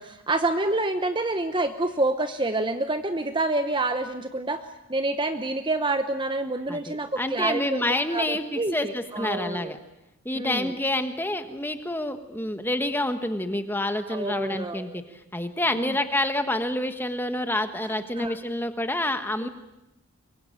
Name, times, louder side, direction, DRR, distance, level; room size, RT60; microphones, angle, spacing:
voice 1, 0.0-4.6 4.9-9.7 10.3-10.7 14.1-15.0 15.7-16.0 18.2-18.4 19.4-19.5, right 2 dB, 20° right, 9 dB, 0.9 m, -28 dB
voice 2, 6.7-9.8 10.2-15.0 15.3-19.5, left 1 dB, 10° left, 8 dB, 1.4 m, -28 dB
24.0 x 22.5 x 8.9 m, 0.92 s
head